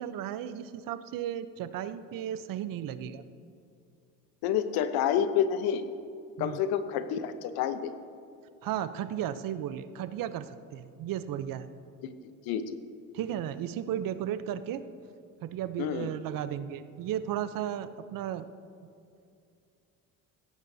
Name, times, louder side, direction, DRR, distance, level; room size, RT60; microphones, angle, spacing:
voice 1, 0.0-3.2 6.4-6.6 8.6-11.7 13.1-14.9 15.4-18.5, right 10 dB, 60° right, 13 dB, 0.8 m, -34 dB
voice 2, 4.4-5.8 6.4-7.9 12.5-12.8 15.8-16.1, left 9 dB, 75° left, 10 dB, 0.9 m, -28 dB
16.5 x 15.0 x 2.7 m, 2.4 s
supercardioid pair, 80°, 37 cm